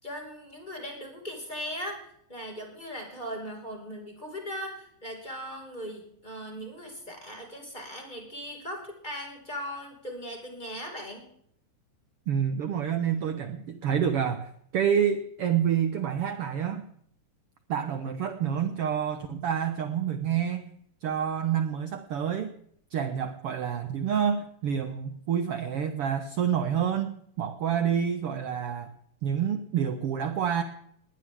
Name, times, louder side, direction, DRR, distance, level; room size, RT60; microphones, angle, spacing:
voice 1, 0.0-2.0 2.3-11.3, equal, 10° left, 0 dB, 5.4 m, -39 dB
voice 2, 12.3-16.9 17.7-20.7 21.0-22.5 22.9-28.9 29.2-30.6, right 8 dB, 65° right, 9 dB, 1.5 m, -28 dB
20.0 x 19.5 x 3.7 m, 0.68 s
omnidirectional pair, 4.0 m